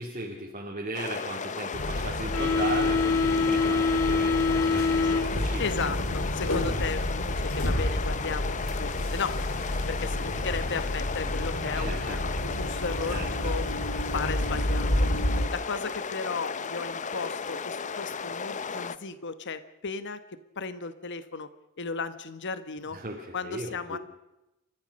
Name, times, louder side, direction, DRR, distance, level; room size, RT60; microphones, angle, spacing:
voice 1, 0.0-5.6 11.7-12.2 13.1-13.3 22.9-24.0, right 2 dB, 40° right, -1 dB, 2.4 m, -36 dB
sound 1, 0.9-19.0, left 5 dB, 35° left, 0.8 m, -35 dB
sound 2, 1.7-15.5, left 2 dB, 75° left, 2.9 m, -28 dB
voice 2, 5.6-9.4 9.9-15.1 15.5-20.2 20.6-21.5 21.8-23.0 23.3-24.0, left 4 dB, 60° left, 12 dB, 1.1 m, -35 dB
30.0 x 14.0 x 6.4 m, 0.95 s
head